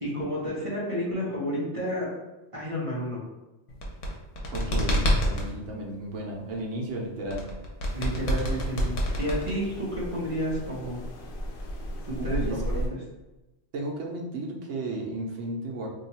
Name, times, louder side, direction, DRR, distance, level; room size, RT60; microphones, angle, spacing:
voice 1, 0.0-2.1 2.5-3.2 7.9-11.0 12.1-12.7, equal, 30° right, -7 dB, 0.8 m, -31 dB
sound 1, 3.7-5.5 7.3-9.9, equal, 80° left, 1.1 m, -26 dB
voice 2, 4.5-7.5 12.2-12.9 13.7-15.9, right 2 dB, 80° right, -1 dB, 1.0 m, -34 dB
sound 2, 7.9-12.9, equal, 60° left, 0.6 m, -36 dB
2.8 x 2.3 x 4.0 m, 1.0 s
omnidirectional pair, 1.2 m